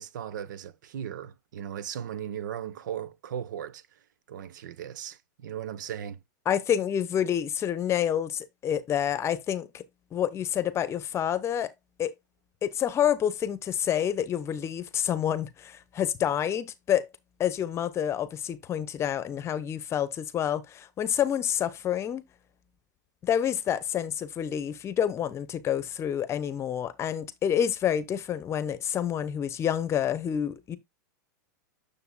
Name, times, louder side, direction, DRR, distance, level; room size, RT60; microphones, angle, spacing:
voice 1, 0.0-3.8 4.3-6.2, right 9 dB, 75° right, 0.9 m, -37 dB
voice 2, 6.4-9.8 10.1-11.7 12.0-12.1 12.6-17.1 17.4-22.2 23.2-30.8, left 9 dB, 25° left, 0.9 m, -28 dB
9.6 x 6.8 x 2.2 m
hypercardioid pair, 125°, 10 cm